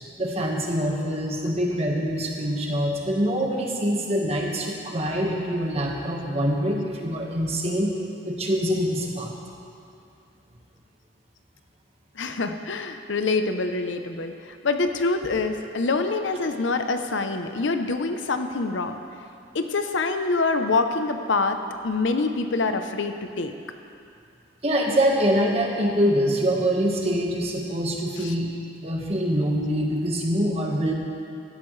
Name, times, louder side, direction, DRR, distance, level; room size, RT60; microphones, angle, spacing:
voice 1, 0.2-7.9 8.2-9.3 24.6-28.5 28.8-30.9, equal, 30° right, -1 dB, 1.5 m, -24 dB
voice 2, 12.2-19.0 19.5-21.6 21.8-23.5 28.2-28.3, left 3 dB, 70° left, 7 dB, 0.7 m, -25 dB
17.5 x 13.0 x 3.3 m, 2.5 s
head